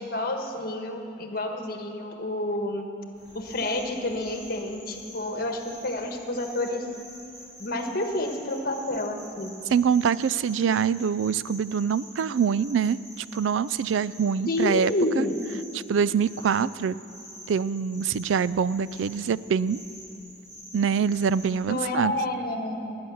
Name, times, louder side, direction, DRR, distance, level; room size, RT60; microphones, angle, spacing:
voice 1, 0.0-2.9 3.3-6.9 7.6-9.6 14.5-15.3 21.7-23.0, left 1 dB, 50° left, 4 dB, 1.4 m, -29 dB
sound 1, 3.1-21.5, equal, 20° right, 4.0 m, -47 dB
voice 2, 9.7-13.0 13.3-14.9 15.2-15.3 15.9-17.0 17.5-19.8 20.7-22.1, right 7 dB, 80° right, 18 dB, 0.4 m, -24 dB
17.5 x 9.7 x 7.0 m, 2.6 s
head